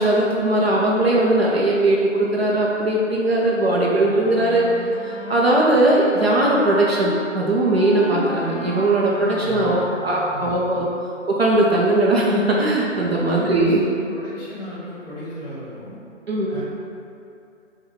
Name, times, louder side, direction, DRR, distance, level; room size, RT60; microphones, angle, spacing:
voice 1, 0.0-4.7 5.0-10.9 11.3-13.8 16.3-16.6, right 2 dB, 55° right, -4 dB, 0.5 m, -19 dB
Wind instrument woodwind instrument, 3.8-7.0 7.7-10.4, left 3 dB, 65° left, 0.5 m, -33 dB
voice 2, 9.4-9.8 10.3-10.9 13.2-16.0 16.5-16.6, left 1 dB, 35° left, -9 dB, 1.5 m, -34 dB
3.6 x 2.2 x 3.3 m, 2.6 s
figure-of-eight pair, 150°, 39 cm